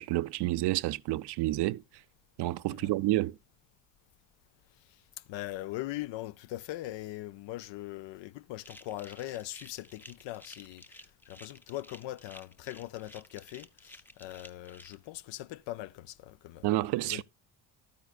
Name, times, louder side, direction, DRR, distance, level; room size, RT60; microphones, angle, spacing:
voice 1, 0.0-1.8 2.4-3.4 16.6-17.2, right 17 dB, 60° right, 0.5 m, -29 dB
voice 2, 4.8-16.7 17.0-17.2, left 15 dB, 65° left, 0.6 m, -41 dB
sound 1, 8.6-14.9, left 1 dB, 5° left, 0.6 m, -53 dB
11.5 x 9.6 x 2.4 m
supercardioid pair, 80°, 48 cm